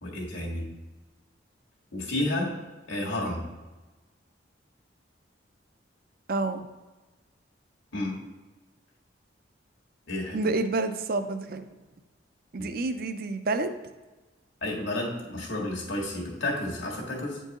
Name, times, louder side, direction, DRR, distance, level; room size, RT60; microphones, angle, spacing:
voice 1, 0.0-0.7 1.9-2.5 2.9-3.4 7.9-8.2 10.1-10.4 12.6-12.7 14.6-17.4, left 1 dB, 85° left, -2 dB, 1.7 m, -31 dB
voice 2, 6.3-6.6 10.3-11.7 12.5-13.7, right 3 dB, 50° right, 9 dB, 0.5 m, -28 dB
8.7 x 4.5 x 2.9 m, 1.2 s
head